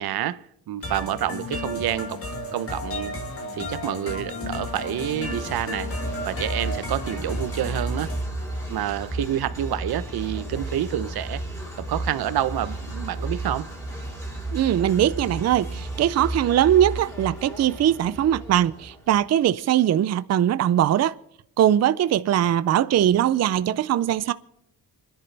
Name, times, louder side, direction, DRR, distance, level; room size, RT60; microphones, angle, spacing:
voice 1, 0.0-2.2 2.5-3.1 3.5-5.9 6.2-8.1 8.7-11.4 11.9-13.7, right 11 dB, 90° right, 0.9 m, -28 dB
sound 1, 0.8-8.2, left 1 dB, 40° left, 3.0 m, -33 dB
sound 2, 4.6-19.3, right 1 dB, 10° left, 4.2 m, -33 dB
voice 2, 14.5-21.1 21.6-24.3, right 11 dB, 45° right, 0.5 m, -21 dB
29.5 x 10.5 x 3.4 m
wide cardioid pair, 175°, 36 cm